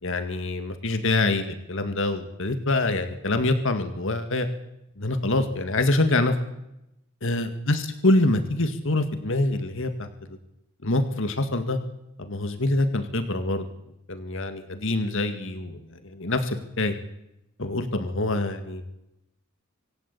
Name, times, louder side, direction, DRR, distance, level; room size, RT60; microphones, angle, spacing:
voice 1, 0.0-4.5 5.0-6.4 7.2-10.4 10.8-11.8 12.2-13.7 14.1-16.9 17.6-18.8, left 2 dB, 65° left, 7 dB, 2.1 m, -25 dB
26.0 x 17.5 x 8.6 m, 0.86 s
head